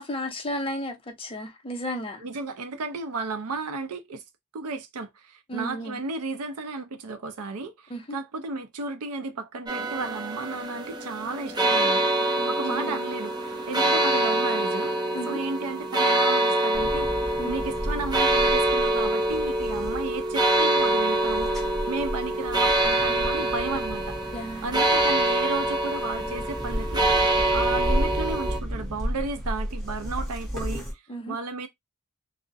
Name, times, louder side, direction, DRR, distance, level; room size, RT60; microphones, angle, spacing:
voice 1, 0.0-2.2 5.5-6.0 7.9-8.2 12.4-13.0 15.1-15.4 17.4-17.5 24.3-24.8 31.1-31.4, equal, 25° left, 0.6 m, -34 dB
voice 2, 2.2-4.2 4.5-13.3 13.7-14.9 15.3-24.2 24.6-27.1 27.5-31.0 31.3-31.7, right 3 dB, 80° right, 0.5 m, -33 dB
sound 1, 9.7-28.6, right 1 dB, 20° right, 0.5 m, -25 dB
sound 2, 16.7-30.9, equal, ahead, 1.0 m, -34 dB
2.4 x 2.0 x 2.5 m
head